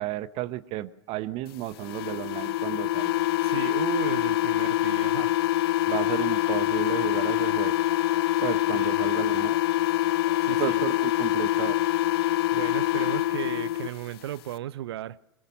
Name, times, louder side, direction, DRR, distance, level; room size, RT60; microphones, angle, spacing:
voice 1, 0.0-3.2 5.9-7.9 8.4-9.5 10.5-11.8, right 15 dB, 45° right, 1.1 m, -33 dB
sound 1, 1.8-13.9, left 15 dB, 65° left, 1.0 m, -25 dB
voice 2, 3.4-5.4 8.7-9.0 10.4-10.8 12.5-15.2, right 12 dB, 70° right, 0.9 m, -35 dB
Applause / Crowd, 4.1-12.3, left 5 dB, 90° left, 3.3 m, -49 dB
23.0 x 22.0 x 6.5 m
hypercardioid pair, 100°, 14 cm